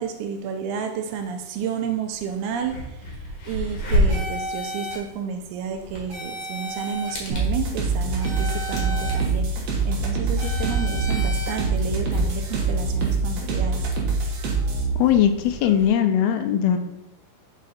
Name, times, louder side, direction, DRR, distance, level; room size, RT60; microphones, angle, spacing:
voice 1, 0.0-3.0 3.5-13.9, right 7 dB, 85° right, 6 dB, 2.6 m, -31 dB
sound 1, 2.1-2.2 2.5-15.9, equal, 55° left, 2.3 m, -31 dB
sound 2, 4.1-5.0 6.1-7.1 8.2-9.1 10.4-11.5, right 1 dB, 35° right, 2.3 m, -33 dB
sound 3, 7.3-14.9, right 3 dB, 60° right, 1.9 m, -24 dB
voice 2, 15.0-16.8, left 9 dB, 80° left, 8 dB, 2.5 m, -19 dB
5.6 x 5.0 x 4.2 m, 0.94 s
omnidirectional pair, 4.5 m